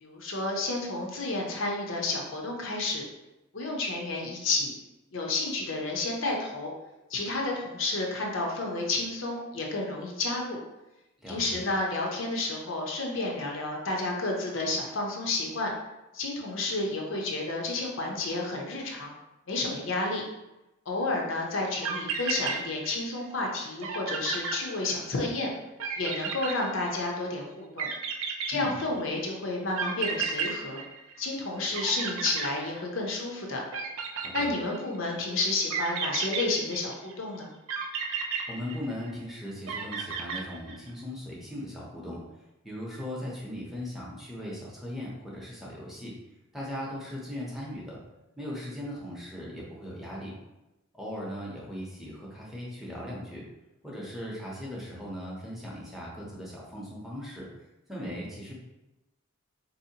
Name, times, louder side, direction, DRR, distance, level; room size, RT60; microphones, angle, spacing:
voice 1, 0.0-3.0 3.5-4.7 5.1-6.7 7.1-10.6 11.3-15.7 16.1-19.1 19.5-20.2 20.9-25.5 26.0-27.9 28.5-30.8 31.2-33.6 34.3-37.5, left 2 dB, 60° left, -1 dB, 0.7 m, -31 dB
voice 2, 11.2-11.6 28.5-28.8 34.2-34.5 38.5-42.2 42.6-46.1 46.5-48.0 48.4-50.3 50.9-53.4 53.8-57.5 57.9-58.6, left 1 dB, ahead, -5 dB, 0.7 m, -38 dB
sound 1, 21.6-21.7 21.8-23.2 23.5-23.6 23.8-25.2 25.8-27.2 27.8-29.1 29.8-31.4 31.7-33.2 33.7-35.0 35.7-37.1 37.7-39.2 39.7-40.9, right 6 dB, 70° right, 0.5 m, -33 dB
4.1 x 2.7 x 2.8 m, 0.97 s
head